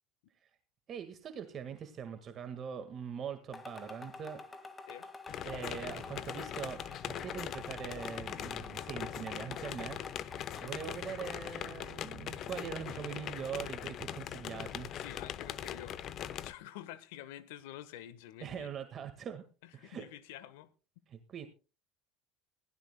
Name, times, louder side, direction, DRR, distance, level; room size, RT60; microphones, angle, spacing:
voice 1, 0.9-4.4 5.4-10.0 10.2-14.9 18.4-19.4 19.7-20.1 21.1-21.5, right 8 dB, 40° right, 1.7 m, -42 dB
sound 1, 3.5-11.4, left 3 dB, 20° left, 1.9 m, -49 dB
sound 2, 5.3-16.5, left 10 dB, 45° left, 0.9 m, -41 dB
voice 2, 14.7-16.0 16.3-18.7 19.8-20.7, left 13 dB, 85° left, 1.2 m, -48 dB
21.0 x 15.5 x 2.2 m
supercardioid pair, 125°, 0 cm